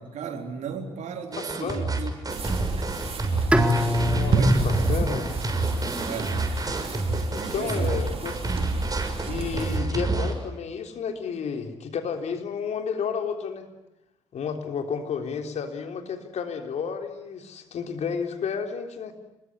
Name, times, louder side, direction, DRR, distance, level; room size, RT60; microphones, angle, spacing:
voice 1, 0.0-2.4 4.3-4.6 6.1-6.4 7.4-8.0, right 6 dB, 65° right, 4 dB, 3.8 m, -35 dB
sound 1, 1.3-10.3, right 2 dB, 30° right, 6.5 m, -28 dB
sound 2, 2.3-9.8, right 3 dB, 50° right, 4.9 m, -30 dB
Bowed string instrument, 3.5-6.5, left 1 dB, 10° right, 4.2 m, -26 dB
voice 2, 4.0-5.3 7.3-8.3 9.3-13.7 14.3-19.1, left 6 dB, 60° left, 5 dB, 3.7 m, -31 dB
27.5 x 21.5 x 9.8 m, 0.92 s
hypercardioid pair, 40°, 13 cm